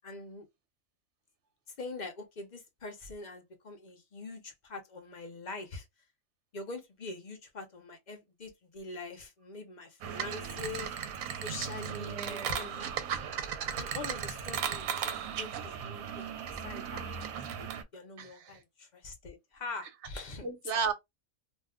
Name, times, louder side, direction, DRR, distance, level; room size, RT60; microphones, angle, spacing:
voice 1, 0.0-0.4 1.8-5.9 6.5-10.9 11.3-12.9 13.7-17.1 17.6-20.5, left 3 dB, 40° left, 0.7 m, -44 dB
sound 1, 10.0-17.8, right 8 dB, 80° right, 1.0 m, -36 dB
voice 2, 11.9-12.6 18.2-18.6 20.4-20.9, right 5 dB, 60° right, 1.0 m, -35 dB
2.6 x 2.2 x 3.5 m
omnidirectional pair, 1.4 m